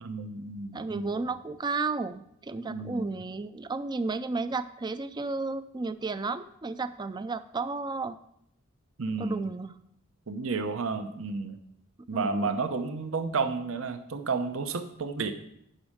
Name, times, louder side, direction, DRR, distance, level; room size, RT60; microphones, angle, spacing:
voice 1, 0.0-1.2 2.7-3.2 9.0-9.5 10.3-11.6 12.1-15.3, right 4 dB, 70° right, 8 dB, 0.8 m, -32 dB
voice 2, 0.7-8.2 9.2-9.8 12.1-12.6, right 3 dB, 20° right, 13 dB, 0.4 m, -33 dB
10.0 x 5.4 x 5.0 m, 0.73 s
head